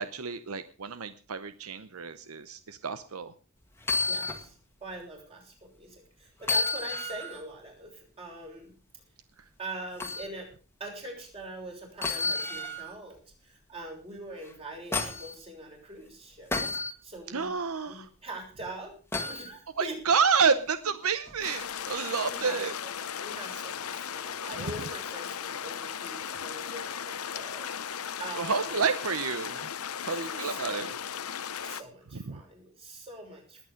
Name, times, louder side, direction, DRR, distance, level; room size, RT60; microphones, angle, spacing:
voice 1, 0.0-3.3 17.3-18.1 19.8-22.7 28.4-29.7 30.0-30.9 32.1-32.4, right 5 dB, 80° right, 12 dB, 0.9 m, -29 dB
sound 1, 3.8-4.5 4.9-5.0 6.4-7.4 10.0-10.3 12.0-13.0 14.4-15.3 16.5-16.9 19.1-19.5 21.3-21.4, left 3 dB, 10° left, 1.8 m, -31 dB
voice 2, 4.1-4.6 4.8-8.7 9.6-10.5 10.8-16.5 17.0-17.5 17.8-18.9 19.2-20.0 22.2-22.6 23.2-28.8 30.1-30.8 31.6-33.6, right 2 dB, 25° right, 0 dB, 7.0 m, -43 dB
sound 2, 21.4-31.8, left 8 dB, 85° left, 0.8 m, -36 dB
20.0 x 9.0 x 5.1 m, 0.37 s
head